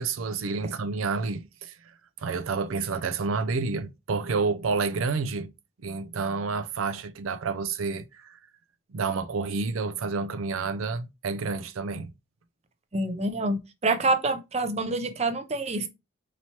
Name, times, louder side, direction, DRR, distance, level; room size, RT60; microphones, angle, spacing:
voice 1, 0.0-5.5 5.8-8.4 8.9-12.1, right 4 dB, 85° right, 0.5 m, -29 dB
voice 2, 12.9-15.9, right 2 dB, 30° right, 0.5 m, -27 dB
4.3 x 3.0 x 2.8 m
head